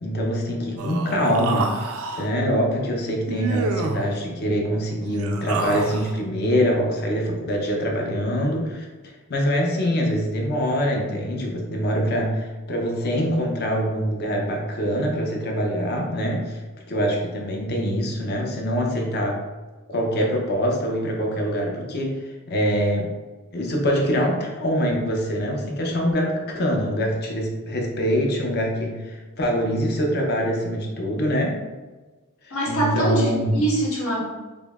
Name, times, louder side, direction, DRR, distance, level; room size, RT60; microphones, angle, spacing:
voice 1, 0.0-8.9 9.3-16.6 16.9-19.4 19.9-23.1 23.5-31.6 32.4-33.6, equal, 50° left, 0 dB, 0.6 m, -24 dB
Human voice, 0.8-2.3 3.3-4.1 5.0-6.2, right 4 dB, 70° right, 0.4 m, -29 dB
voice 2, 32.5-34.2, right 1 dB, 80° left, -6 dB, 1.3 m, -23 dB
5.1 x 2.1 x 2.3 m, 1.3 s
head